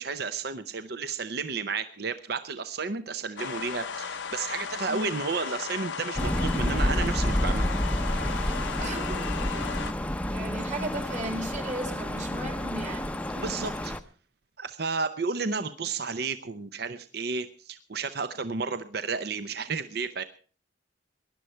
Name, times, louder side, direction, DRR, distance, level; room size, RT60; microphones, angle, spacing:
voice 1, 0.0-7.7 13.4-13.9 14.6-20.2, right 4 dB, 55° right, 11 dB, 0.7 m, -32 dB
sound 1, 3.4-9.9, left 6 dB, 70° left, 0.7 m, -35 dB
voice 2, 4.9-5.2 8.8-9.7 10.3-13.1, right 2 dB, 40° right, 7 dB, 2.3 m, -36 dB
sound 2, 6.1-14.0, left 1 dB, 5° left, 0.6 m, -29 dB
19.0 x 11.5 x 4.5 m, 0.41 s
head